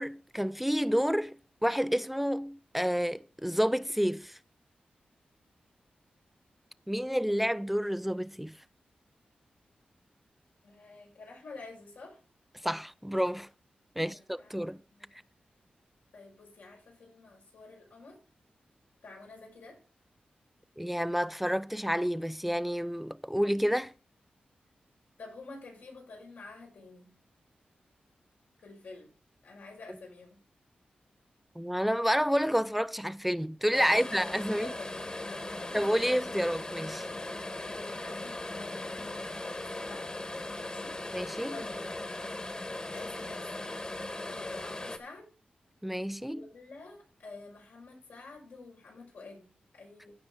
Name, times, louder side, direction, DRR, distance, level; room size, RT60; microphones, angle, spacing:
voice 1, 0.0-1.4 1.6-4.4 6.9-8.6 12.6-13.5 14.0-14.8 20.8-23.9 31.6-34.7 35.7-37.1 41.1-41.6 45.8-46.4, equal, 5° right, 0.4 m, -29 dB
voice 2, 10.6-12.2 14.0-15.2 16.1-18.2 19.0-19.8 25.2-27.1 28.6-29.1 29.4-30.4 33.9-34.1 34.5-34.9 35.2-36.1 37.6-40.1 40.6-41.0 41.5-41.9 42.9-45.3 46.3-50.1, left 3 dB, 85° left, 5.5 m, -49 dB
sound 1, 33.7-45.0, left 2 dB, 30° left, 1.5 m, -38 dB
15.5 x 5.4 x 3.8 m
cardioid pair, 55°, 3 cm